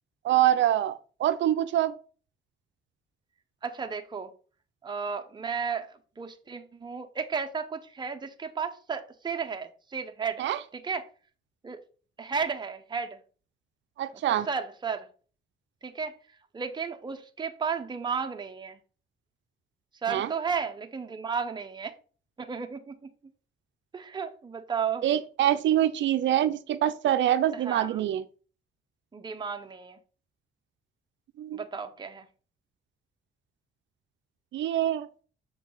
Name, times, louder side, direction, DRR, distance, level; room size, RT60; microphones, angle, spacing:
voice 1, 0.2-1.9 10.4-10.6 14.0-14.5 20.1-20.3 25.0-28.2 31.4-31.6 34.5-35.1, right 12 dB, 70° right, 0.5 m, -25 dB
voice 2, 3.6-4.3 4.8-5.9 6.2-10.4 10.7-11.1 11.6-11.8 12.2-13.2 14.3-15.1 15.8-16.2 16.5-18.8 20.0-21.9 22.4-22.9 23.9-25.0 27.5-28.0 29.1-30.0 31.5-32.3, right 6 dB, 20° right, 0.8 m, -33 dB
6.9 x 4.5 x 3.9 m
cardioid pair, 90°, 20 cm